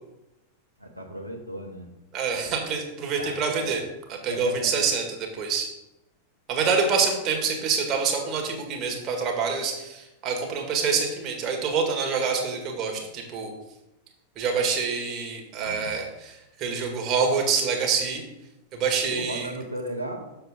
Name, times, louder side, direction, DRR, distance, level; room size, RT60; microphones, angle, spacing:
voice 1, 0.8-1.9 3.2-3.8 4.3-4.8 15.5-16.0 19.0-20.3, right 1 dB, 90° right, 1 dB, 1.1 m, -36 dB
voice 2, 2.1-3.8 4.1-5.7 6.5-13.5 14.3-18.2 18.7-19.5, right 5 dB, 35° right, 2 dB, 1.7 m, -26 dB
7.1 x 6.5 x 3.6 m, 0.95 s
figure-of-eight pair, 90°, 0 cm